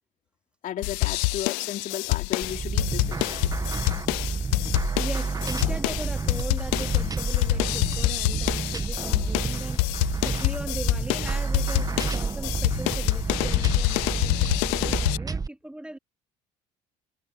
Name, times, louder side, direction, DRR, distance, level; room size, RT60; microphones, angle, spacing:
voice 1, 0.6-3.5, left 11 dB, 55° left, 3.4 m, -34 dB
sound 1, 0.8-15.2, left 28 dB, 85° left, 0.5 m, -26 dB
sound 2, 2.4-15.5, right 4 dB, 25° right, 1.4 m, -30 dB
voice 2, 3.2-4.2 4.5-4.7 5.0-16.0, right 1 dB, 5° right, 2.5 m, -40 dB
supercardioid pair, 85°, 16 cm